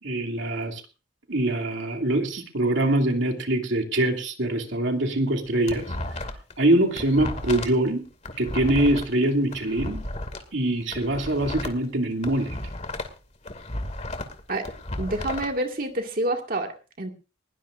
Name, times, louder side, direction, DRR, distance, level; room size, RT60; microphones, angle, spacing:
voice 1, 0.0-0.8 1.3-5.9 6.6-8.0 8.4-10.0 10.5-12.5, right 1 dB, 75° right, 3 dB, 2.7 m, -24 dB
sound 1, 5.3-6.5 6.8-10.4 10.8-13.2 13.4-15.5, left 1 dB, 35° left, 2.4 m, -33 dB
voice 2, 15.0-17.1, right 1 dB, 50° right, 3 dB, 2.1 m, -28 dB
20.5 x 18.0 x 2.6 m, 0.34 s
head